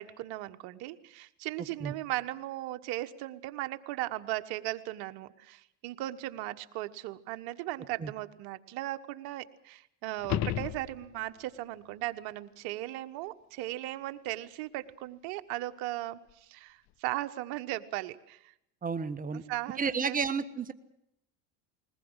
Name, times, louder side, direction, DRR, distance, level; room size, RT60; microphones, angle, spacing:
voice 1, 0.0-18.5 19.3-20.2, right 16 dB, 65° right, 10 dB, 1.4 m, -37 dB
sound 1, 10.2-11.4 16.3-16.4, left 12 dB, 45° left, 0.8 m, -33 dB
voice 2, 18.8-19.4 19.8-20.7, right 5 dB, 20° right, 10 dB, 1.3 m, -31 dB
21.0 x 20.0 x 8.1 m, 0.77 s
supercardioid pair, 110°, 39 cm